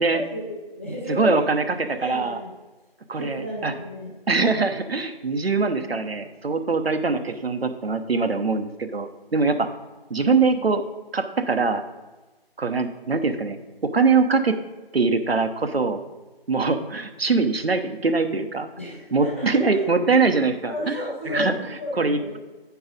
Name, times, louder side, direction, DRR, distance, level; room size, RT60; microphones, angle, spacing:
voice 1, 0.1-1.6 2.0-2.5 3.2-4.1 10.5-10.6 18.8-19.8 20.7-22.4, left 1 dB, 15° left, -7 dB, 0.9 m, -32 dB
voice 2, 1.1-2.4 3.1-3.7 4.3-9.7 10.1-10.8 11.1-11.8 12.6-14.6 14.9-16.0 16.5-18.7 19.1-21.0 21.3-21.5 21.9-22.4, right 4 dB, 75° right, 7 dB, 0.9 m, -23 dB
9.1 x 4.7 x 5.0 m, 1.2 s
figure-of-eight pair, 170°, 30 cm